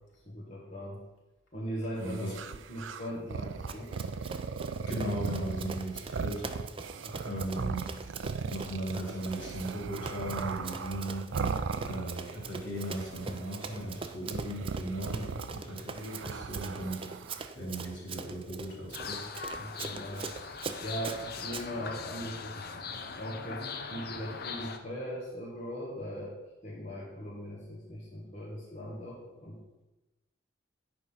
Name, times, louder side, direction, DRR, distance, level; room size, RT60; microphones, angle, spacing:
voice 1, 0.3-1.0 1.5-3.9 7.0-7.4 11.7-12.0 15.1-15.3 19.6-20.3 20.8-22.8 23.2-26.3 26.6-29.6, equal, 40° left, -6 dB, 1.5 m, -40 dB
voice 2, 2.0-2.4 4.9-6.5 7.2-7.9 8.5-11.3 11.8-17.0 17.5-19.3, right 1 dB, 75° left, -3 dB, 3.6 m, -37 dB
sound 1, 2.0-12.5 12.7-13.7 14.3-17.5, right 5 dB, 85° right, 0.4 m, -38 dB
Run, 3.7-21.7, right 4 dB, 30° right, 0.5 m, -43 dB
sound 2, 18.9-24.8, left 5 dB, 55° left, 0.7 m, -40 dB
9.0 x 5.2 x 5.7 m, 1.1 s
head